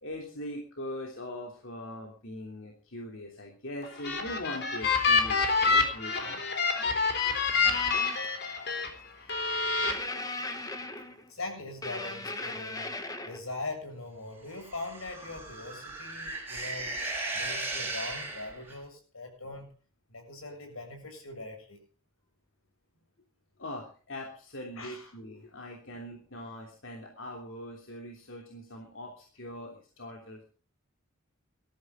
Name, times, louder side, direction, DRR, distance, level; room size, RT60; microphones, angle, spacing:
voice 1, 0.0-6.4 23.6-30.4, left 1 dB, 65° left, 0 dB, 3.2 m, -41 dB
sound 1, 3.8-8.9 9.3-9.9, left 4 dB, 50° left, 3.7 m, -27 dB
sound 2, 7.6-8.3 9.8-11.3 11.8-13.4, left 2 dB, 15° left, 1.7 m, -37 dB
voice 2, 11.3-12.9 13.3-16.9 17.3-19.7 20.1-21.8 24.8-25.1, left 2 dB, 85° left, 5 dB, 7.3 m, -41 dB
sound 3, 14.5-18.8, right 2 dB, 10° right, 6.1 m, -37 dB
21.0 x 14.0 x 3.8 m, 0.40 s
head